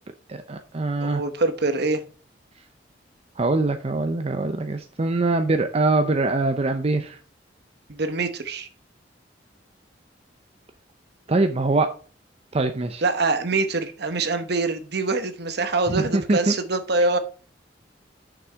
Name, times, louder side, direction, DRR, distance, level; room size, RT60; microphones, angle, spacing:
voice 1, 0.3-1.2 3.4-7.2 11.3-11.9 12.5-13.0 15.9-16.5, right 2 dB, 35° right, 6 dB, 0.6 m, -23 dB
voice 2, 1.0-2.0 7.9-8.7 13.0-17.2, right 3 dB, 60° right, 9 dB, 1.0 m, -24 dB
6.5 x 6.0 x 4.5 m, 0.39 s
head